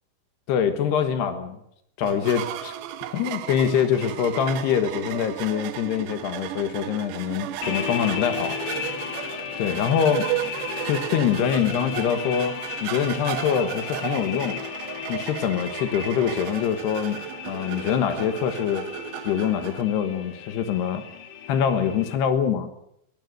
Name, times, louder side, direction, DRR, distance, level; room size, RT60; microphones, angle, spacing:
voice 1, 0.5-1.6 2.0-2.7 3.1-8.6 9.6-10.3 10.9-14.6 15.1-18.8 19.3-21.0 21.5-22.7, left 8 dB, 75° left, 9 dB, 3.4 m, -24 dB
sound 1, 2.0-19.8, right 13 dB, 90° right, 3.4 m, -34 dB
sound 2, 7.6-22.1, left 9 dB, 60° left, 3.2 m, -35 dB
21.5 x 19.5 x 7.7 m, 0.73 s
omnidirectional pair, 4.9 m